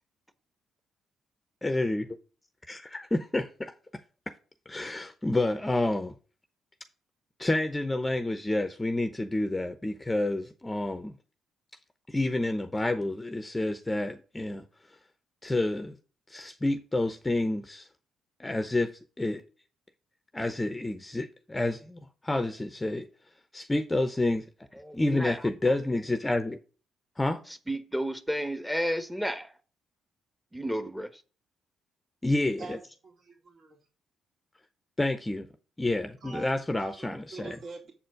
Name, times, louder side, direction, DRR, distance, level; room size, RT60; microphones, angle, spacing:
voice 1, 1.6-2.2 2.7-3.7 4.7-6.1 7.4-11.1 12.1-14.6 15.4-16.0 16.3-17.9 18.4-19.4 20.3-23.0 23.5-24.5 24.9-26.6 27.2-27.4 32.2-32.8 35.0-35.5 35.8-37.6, left 2 dB, 15° left, 0.8 m, -29 dB
voice 2, 24.8-25.4 27.7-29.5 30.5-31.2, equal, 5° right, 1.1 m, -32 dB
voice 3, 32.6-33.8 36.2-37.9, right 4 dB, 55° right, 2.7 m, -44 dB
7.5 x 4.4 x 6.2 m
supercardioid pair, 65°, 0 cm